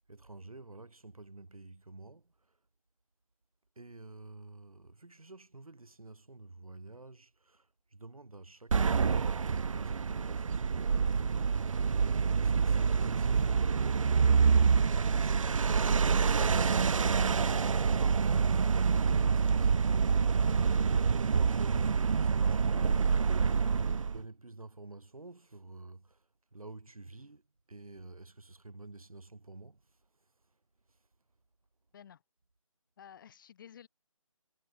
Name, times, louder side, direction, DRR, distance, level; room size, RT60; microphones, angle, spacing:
voice 1, 0.1-2.3 3.8-7.7 7.9-11.5 11.9-14.2 14.9-20.7 21.3-26.2 26.5-27.4 27.7-29.8, right 2 dB, 85° right, 4.1 m, -49 dB
sound 1, 8.7-24.2, right 5 dB, 65° right, 0.6 m, -27 dB
voice 2, 33.0-33.9, left 9 dB, 35° left, 4.7 m, -52 dB
figure-of-eight pair, 155°, 18 cm